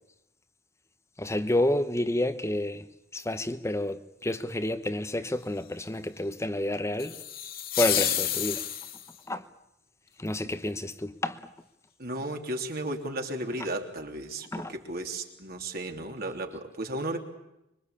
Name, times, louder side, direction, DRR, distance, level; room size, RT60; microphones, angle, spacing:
voice 1, 1.2-2.9 3.1-7.2 7.8-8.7 9.3-9.5 10.2-11.4 14.5-14.7, left 1 dB, 15° left, 1.0 m, -29 dB
sound 1, 7.0-9.2, left 10 dB, 55° left, 2.2 m, -30 dB
voice 2, 12.0-17.2, right 1 dB, 55° right, 3.3 m, -34 dB
25.5 x 23.5 x 8.4 m
head